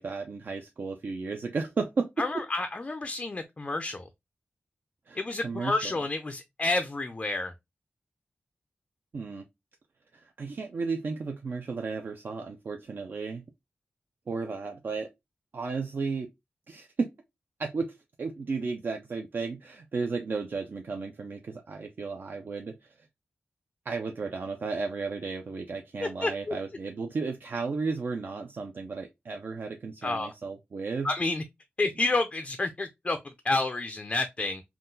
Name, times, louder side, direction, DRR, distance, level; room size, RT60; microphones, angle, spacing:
voice 1, 0.0-2.4 5.1-5.9 9.1-9.4 10.1-13.4 14.3-15.1 15.5-16.3 16.7-17.1 17.6-23.1 23.9-31.1, right 4 dB, 55° right, 0.4 m, -34 dB
voice 2, 2.2-4.0 5.2-7.5 26.0-26.6 30.0-30.3 31.0-31.4 31.8-33.2 33.4-34.6, left 2 dB, 30° left, 0.3 m, -29 dB
3.7 x 2.2 x 2.5 m
wide cardioid pair, 105°, 4 cm